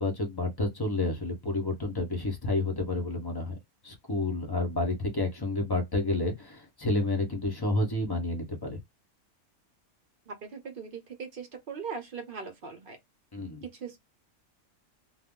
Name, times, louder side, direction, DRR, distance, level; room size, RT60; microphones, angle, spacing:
voice 1, 0.0-3.6 3.8-8.8 13.3-13.6, left 2 dB, 25° left, 0.5 m, -30 dB
voice 2, 10.3-13.0 13.6-14.0, right 5 dB, 50° right, 0.7 m, -40 dB
2.4 x 2.0 x 3.6 m
omnidirectional pair, 1.5 m